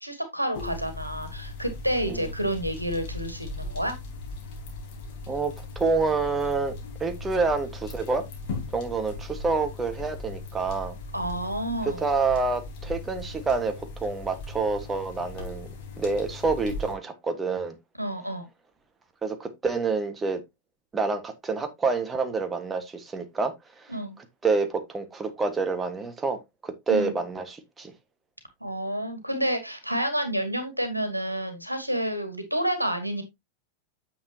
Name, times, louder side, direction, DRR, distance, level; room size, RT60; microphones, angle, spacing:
voice 1, 0.0-4.0 11.1-12.0 18.0-18.5 23.9-24.2 26.9-27.1 28.6-33.2, right 1 dB, 90° right, 1.9 m, -29 dB
sound 1, 0.5-17.0, left 2 dB, 50° left, 3.9 m, -38 dB
voice 2, 5.3-6.7 7.0-8.2 8.7-11.0 11.8-15.7 16.0-17.8 19.2-20.4 20.9-23.9 24.4-27.9, right 4 dB, 15° right, 1.5 m, -28 dB
9.3 x 7.0 x 2.8 m
figure-of-eight pair, 90°, 0 cm